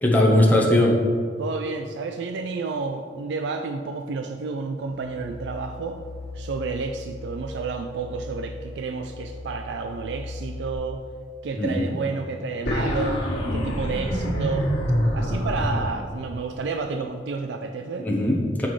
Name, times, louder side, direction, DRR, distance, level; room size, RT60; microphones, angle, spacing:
voice 1, 0.0-1.0 11.6-11.8 18.0-18.7, left 1 dB, 10° left, -2 dB, 0.9 m, -19 dB
voice 2, 1.4-6.0 6.3-11.0 11.4-13.2 13.5-14.7 15.1-18.1, right 4 dB, 75° right, 6 dB, 0.4 m, -30 dB
sound 1, 4.8-10.7, left 2 dB, 60° right, 0.9 m, -39 dB
sound 2, 12.7-15.9, equal, 75° left, 1.6 m, -25 dB
7.4 x 6.0 x 3.2 m, 2.1 s
head